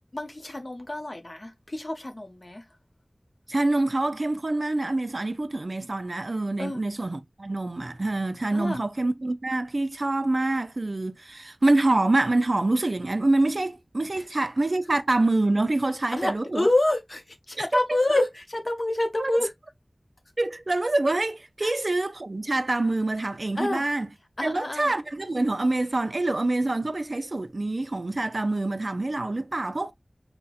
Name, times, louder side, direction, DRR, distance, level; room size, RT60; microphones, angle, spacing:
voice 1, 0.1-2.6 6.6-6.8 8.5-8.8 14.2-14.3 16.1-19.5 21.6-21.7 23.6-23.9 24.4-24.9, left 2 dB, 55° left, 0.7 m, -27 dB
voice 2, 3.5-16.7 17.9-18.3 19.2-19.3 20.4-24.1 24.4-29.9, right 2 dB, 65° right, 0.3 m, -26 dB
4.1 x 2.1 x 2.2 m
wide cardioid pair, 40°, 0 cm